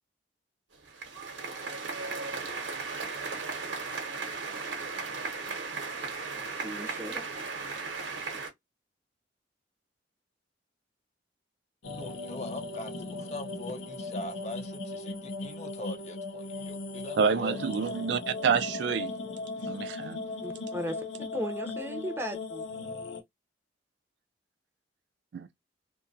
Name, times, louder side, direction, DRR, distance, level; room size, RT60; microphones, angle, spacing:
sound 1, 0.7-8.5, right 4 dB, 80° right, 0.9 m, -36 dB
voice 1, 6.6-7.2 20.4-21.1 21.3-22.7, equal, 15° right, 0.5 m, -36 dB
sound 2, 11.8-23.2, left 3 dB, 80° left, 0.6 m, -38 dB
voice 2, 12.0-17.6, left 2 dB, 40° left, 0.6 m, -41 dB
voice 3, 17.2-19.1 19.6-20.2 25.3-25.5, right 6 dB, 65° right, 0.3 m, -28 dB
2.7 x 2.2 x 2.6 m
head